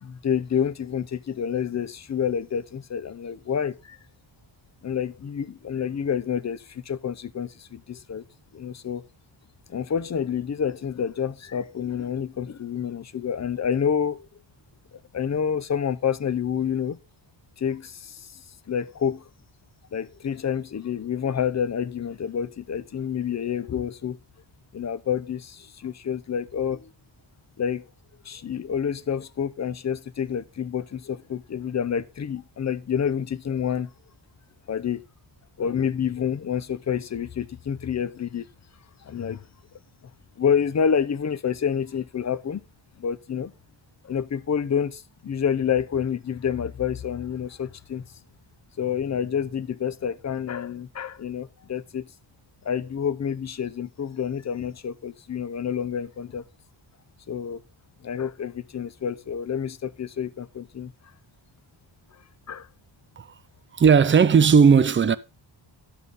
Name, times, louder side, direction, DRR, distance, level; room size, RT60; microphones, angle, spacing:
voice 1, 0.0-4.0 4.8-8.2 8.5-9.0 9.7-14.3 15.1-17.0 17.6-18.4 18.7-19.2 19.9-24.2 24.7-26.9 27.6-27.8 28.2-33.9 34.7-35.0 35.6-38.5 39.0-39.4 40.4-42.6 43.0-43.5 44.0-48.0 48.8-52.1 52.6-56.4 57.3-57.6 58.0-60.9 62.5-62.7, left 7 dB, 35° left, 0.5 m, -28 dB
voice 2, 63.7-65.2, right 6 dB, 25° right, 0.4 m, -16 dB
11.5 x 7.4 x 4.0 m
wide cardioid pair, 145°, 48 cm